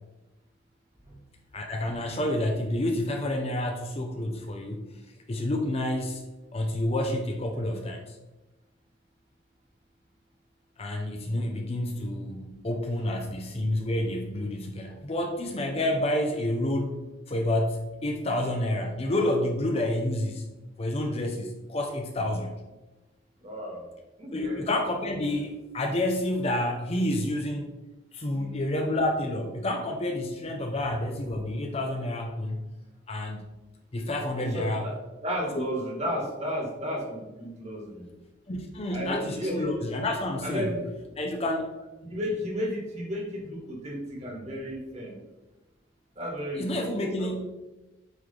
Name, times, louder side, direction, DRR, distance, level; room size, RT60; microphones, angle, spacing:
voice 1, 1.5-4.9 5.3-6.2 6.5-8.2 10.8-20.5 20.8-22.6 24.3-27.8 28.1-32.6 33.1-33.4 33.9-34.9 35.6-35.7 38.5-40.7 41.2-41.8 46.6-47.5, left 1 dB, 30° left, 4 dB, 0.5 m, -29 dB
voice 2, 23.4-23.8 24.2-24.6 28.3-28.6 34.4-35.0 35.2-38.1 38.9-39.9 40.4-40.9 42.1-45.2 46.2-46.9 47.2-47.3, equal, 35° right, -1 dB, 1.6 m, -33 dB
8.0 x 3.2 x 3.8 m, 1.1 s
head